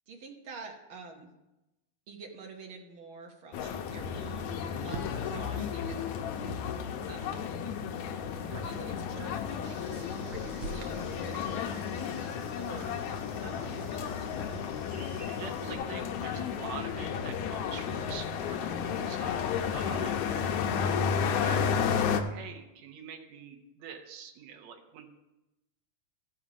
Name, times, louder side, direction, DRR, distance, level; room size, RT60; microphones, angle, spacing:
voice 1, 0.1-1.3 2.1-6.1 6.7-7.4 8.5-11.9 12.6-13.0 13.8-14.6, right 4 dB, 55° right, 2 dB, 1.6 m, -48 dB
sound 1, 3.5-22.2, left 7 dB, 85° left, 2.0 m, -32 dB
sound 2, 4.9-6.0 8.3-8.8 10.3-11.6, right 5 dB, 90° right, 2.3 m, -44 dB
sound 3, 9.6-15.7, right 2 dB, 40° right, 2.9 m, -55 dB
voice 2, 13.4-13.9 15.3-20.8 21.3-21.7 22.1-25.1, right 7 dB, 70° right, 2 dB, 2.3 m, -46 dB
13.5 x 5.7 x 5.0 m, 0.96 s
omnidirectional pair, 3.3 m